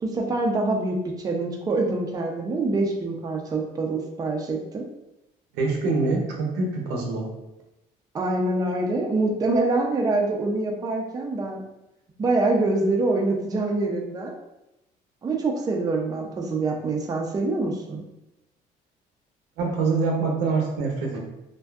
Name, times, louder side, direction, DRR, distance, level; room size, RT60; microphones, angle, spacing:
voice 1, 0.0-4.8 8.1-11.6 12.2-14.3 15.2-18.0, right 2 dB, 20° right, 1 dB, 0.4 m, -25 dB
voice 2, 5.5-7.3 19.6-21.2, right 3 dB, 90° right, 0 dB, 0.6 m, -25 dB
2.6 x 2.2 x 2.3 m, 0.92 s
cardioid pair, 110°, 17 cm